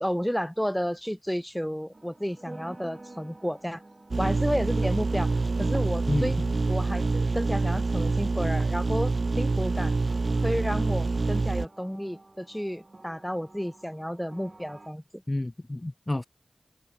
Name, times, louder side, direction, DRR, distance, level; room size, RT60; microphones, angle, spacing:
voice 1, 0.0-3.8 4.2-5.3 5.6-6.4 6.7-9.9 10.4-15.2, equal, 5° left, 1.1 m, -31 dB
sound 1, 1.9-14.9, right 2 dB, 45° right, 7.4 m, -51 dB
sound 2, 4.1-11.7, right 3 dB, 65° right, 0.5 m, -26 dB
voice 2, 6.1-6.6 15.3-16.3, left 1 dB, 30° left, 0.5 m, -30 dB
cardioid pair, 45°, 0 cm